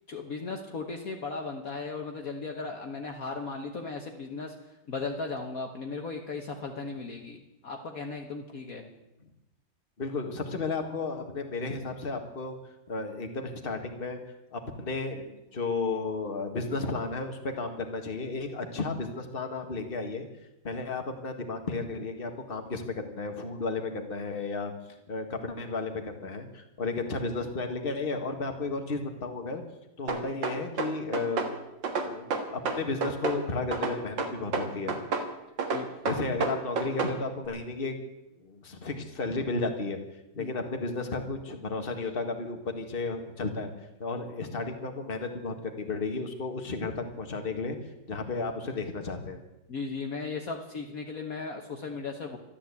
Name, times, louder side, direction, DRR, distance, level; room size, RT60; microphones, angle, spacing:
voice 1, 0.1-4.5 4.9-8.8 35.7-35.9 40.4-40.6 49.7-52.4, left 4 dB, 50° left, 3 dB, 1.7 m, -36 dB
voice 2, 10.0-12.6 12.9-14.2 14.5-20.3 20.6-24.7 25.1-29.6 30.0-31.4 31.9-34.9 36.0-38.0 38.4-40.0 40.3-43.7 44.0-47.8 48.1-49.4, left 3 dB, 30° left, 5 dB, 1.8 m, -33 dB
sound 1, 30.1-31.5 31.8-33.4 33.7-35.3 35.6-37.2, right 4 dB, 80° right, 2.4 m, -29 dB
13.5 x 12.0 x 8.3 m, 0.93 s
omnidirectional pair, 2.0 m